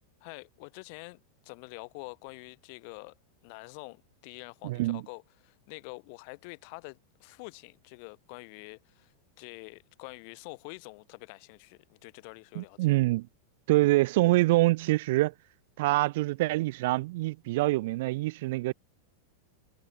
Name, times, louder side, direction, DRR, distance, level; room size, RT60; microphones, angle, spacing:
voice 1, 0.2-3.2 3.4-13.0, left 35 dB, 45° left, 2.4 m, -46 dB
voice 2, 4.6-5.0 12.6-13.3 13.7-15.3 15.8-18.7, right 19 dB, 50° right, 0.5 m, -25 dB
figure-of-eight pair, 90°, 0 cm